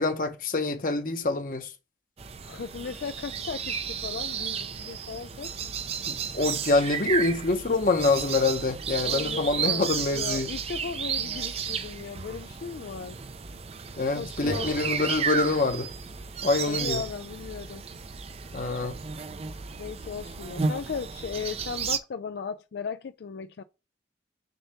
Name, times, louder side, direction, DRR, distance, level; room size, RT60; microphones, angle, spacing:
voice 1, 0.0-1.7 6.1-10.5 14.0-15.9 16.4-17.0 18.5-19.0, left 3 dB, 50° left, 0.9 m, -26 dB
sound 1, 2.2-22.0, right 6 dB, 35° right, 0.5 m, -33 dB
voice 2, 2.4-5.5 9.0-9.9 10.1-13.2 14.1-14.7 16.7-17.8 19.8-23.6, left 6 dB, 65° left, 0.4 m, -36 dB
6.6 x 2.8 x 5.6 m
head